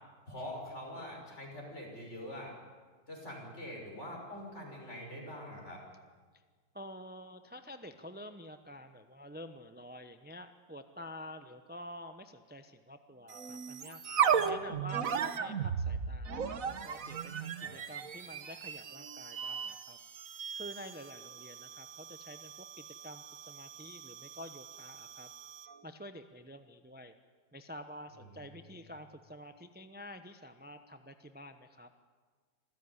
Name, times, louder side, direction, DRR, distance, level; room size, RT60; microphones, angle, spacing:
voice 1, 0.3-2.5 3.1-5.8 17.6-17.8, left 1 dB, 35° left, 0 dB, 6.4 m, -44 dB
voice 2, 6.7-14.0 14.4-20.0 20.5-25.3 25.8-27.1 27.5-31.9, left 1 dB, 15° right, 8 dB, 0.4 m, -49 dB
sound 1, 13.3-25.8, right 7 dB, 55° right, 1.4 m, -36 dB
26.0 x 16.0 x 9.7 m, 1.5 s
omnidirectional pair, 1.9 m